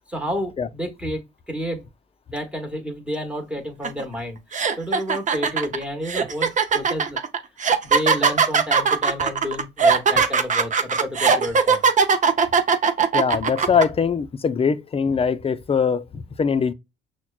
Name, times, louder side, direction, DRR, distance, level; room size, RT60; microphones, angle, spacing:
voice 1, 0.1-1.8 2.3-4.4 4.8-7.2 7.8-11.8, equal, 5° right, 1.1 m, -30 dB
sound 1, 3.8-4.0 4.5-13.8, right 5 dB, 40° right, 0.6 m, -19 dB
voice 2, 13.1-16.7, left 6 dB, 30° left, 0.4 m, -22 dB
5.8 x 2.2 x 2.3 m
cardioid pair, 90°, 20 cm